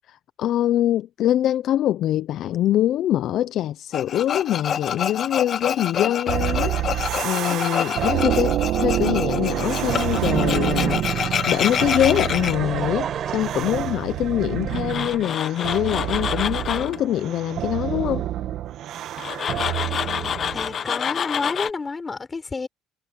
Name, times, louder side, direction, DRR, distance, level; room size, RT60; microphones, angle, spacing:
voice 1, 0.4-18.2, left 12 dB, 60° left, 0.5 m, -24 dB
Tools, 3.9-12.5 14.7-17.0 19.2-21.7, left 8 dB, 45° left, 1.1 m, -27 dB
sound 1, 6.3-20.8, right 12 dB, 65° right, 1.6 m, -27 dB
Laughter, 12.0-15.1 15.9-16.0 17.5-17.6, right 8 dB, 45° right, 7.0 m, -33 dB
voice 2, 20.5-22.7, left 4 dB, 25° left, 5.3 m, -29 dB
cardioid pair, 110°, 0 cm